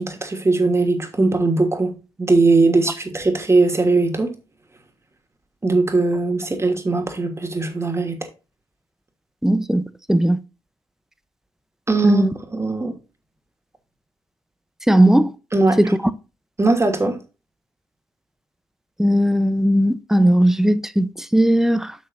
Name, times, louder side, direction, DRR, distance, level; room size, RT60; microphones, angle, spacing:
voice 1, 0.0-4.3 5.6-8.3 11.9-12.2 12.5-12.9 15.5-15.8 16.6-17.2, right 3 dB, 25° right, 2.9 m, -19 dB
voice 2, 9.4-9.8 10.1-10.4 12.0-12.3 14.9-15.3 15.8-16.0 19.0-21.9, right 1 dB, 5° right, 0.9 m, -17 dB
10.5 x 6.2 x 2.8 m
supercardioid pair, 50°, 11 cm